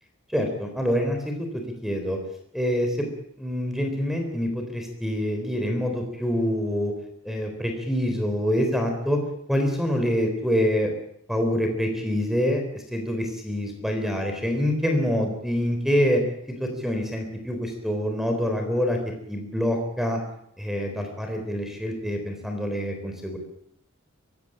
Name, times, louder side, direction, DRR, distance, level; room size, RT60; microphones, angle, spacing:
voice 1, 0.3-2.2 2.5-3.1 3.4-6.9 7.2-9.2 9.5-10.9 11.3-16.2 16.5-20.2 20.6-23.4, equal, ahead, 4 dB, 3.7 m, -26 dB
23.0 x 16.5 x 8.7 m, 0.72 s
head